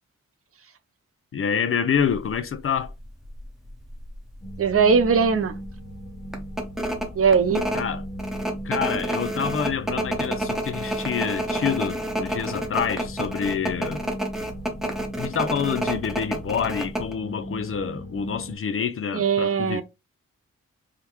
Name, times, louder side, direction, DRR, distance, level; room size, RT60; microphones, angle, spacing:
voice 1, 1.3-2.9 7.7-8.1 8.6-14.0 15.2-19.8, left 7 dB, 45° left, 0.5 m, -27 dB
sound 1, 2.1-2.3 2.8-2.9 3.2-4.1 4.5-4.6 5.0-5.3 5.6-5.7 6.3-17.1, right 1 dB, ahead, 0.9 m, -29 dB
sound 2, 4.4-18.6, equal, 25° left, 1.5 m, -38 dB
voice 2, 4.6-5.5 7.2-7.6 19.1-19.8, right 6 dB, 50° right, 0.6 m, -20 dB
3.6 x 2.2 x 2.9 m
cardioid pair, 80°, 30 cm